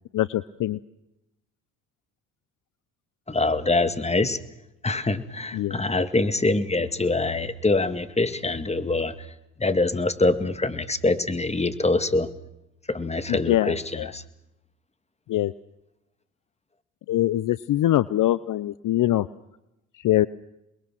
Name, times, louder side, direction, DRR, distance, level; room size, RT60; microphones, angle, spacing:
voice 1, 0.1-0.8 5.5-5.8 13.3-14.1 15.3-15.5 17.1-19.3 19.9-20.3, left 14 dB, 55° left, 18 dB, 0.8 m, -23 dB
voice 2, 3.3-4.4 4.8-9.1 9.6-12.3 12.9-13.8 14.1-14.2, left 2 dB, 15° left, 11 dB, 2.1 m, -24 dB
28.5 x 21.5 x 6.2 m, 0.86 s
hypercardioid pair, 55°, 39 cm